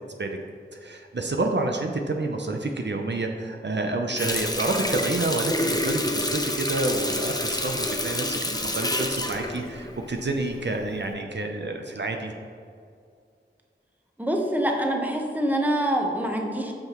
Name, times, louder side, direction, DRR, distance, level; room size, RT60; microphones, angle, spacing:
voice 1, 0.7-12.3, right 2 dB, 65° right, 3 dB, 0.6 m, -29 dB
Water tap faucet, 4.2-10.5 10.9-11.1, left 1 dB, 20° left, 0.7 m, -28 dB
voice 2, 14.2-16.7, right 1 dB, 10° right, 1 dB, 1.0 m, -25 dB
8.7 x 5.7 x 3.0 m, 2.3 s
wide cardioid pair, 40°, 20 cm